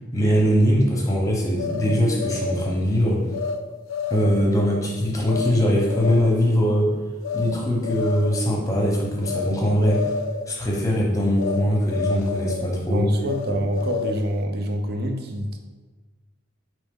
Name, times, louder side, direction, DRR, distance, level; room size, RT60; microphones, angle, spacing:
voice 1, 0.1-3.3 4.1-6.9 7.3-10.0 10.5-13.1, equal, 15° left, -1 dB, 0.9 m, -21 dB
sound 1, 1.6-2.7 3.3-3.6 3.9-4.5 5.3-5.5 5.9-6.4 7.2-7.5 7.8-8.5 9.2-9.5 9.8-10.4 11.4-11.6 11.9-12.7 13.3-14.3, left 5 dB, 80° left, 0.4 m, -29 dB
voice 2, 12.9-15.6, equal, 50° right, 4 dB, 0.5 m, -26 dB
4.7 x 3.0 x 3.7 m, 1.3 s
head